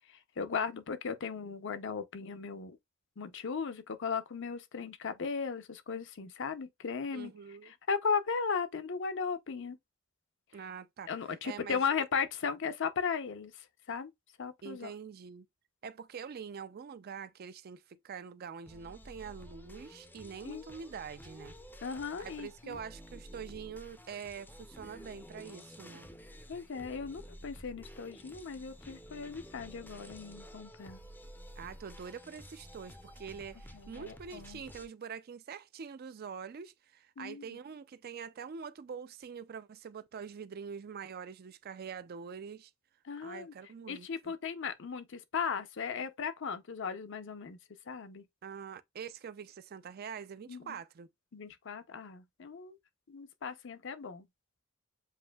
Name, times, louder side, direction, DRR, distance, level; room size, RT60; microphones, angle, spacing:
voice 1, 0.4-2.8 3.2-7.3 7.9-9.8 11.1-13.5 13.9-14.1 14.4-14.9 20.4-20.6 21.8-22.8 26.5-31.0 33.7-34.6 37.2-37.6 43.0-43.5 43.9-47.6 47.9-48.2 50.5-50.7 51.3-52.8 53.1-54.2, left 6 dB, 60° left, 0.6 m, -36 dB
voice 2, 7.1-7.7 10.5-11.1 11.4-11.8 14.6-15.5 15.8-21.5 22.2-26.1 31.6-42.7 43.2-44.3 48.4-51.1, right 6 dB, 50° right, 0.4 m, -45 dB
sound 1, 18.6-34.9, equal, 10° left, 0.5 m, -51 dB
7.2 x 2.6 x 2.3 m
head